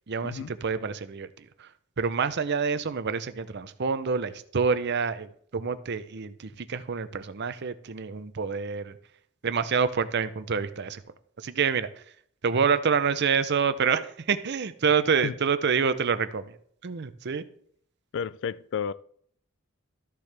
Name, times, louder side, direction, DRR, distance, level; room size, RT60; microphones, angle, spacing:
voice 1, 0.1-1.7 2.0-8.9 9.4-11.0 11.4-11.9 12.4-16.5 16.8-17.4, right 6 dB, 55° right, 0.6 m, -27 dB
voice 2, 18.1-18.9, left 7 dB, 60° left, 0.3 m, -31 dB
13.5 x 6.8 x 3.4 m
head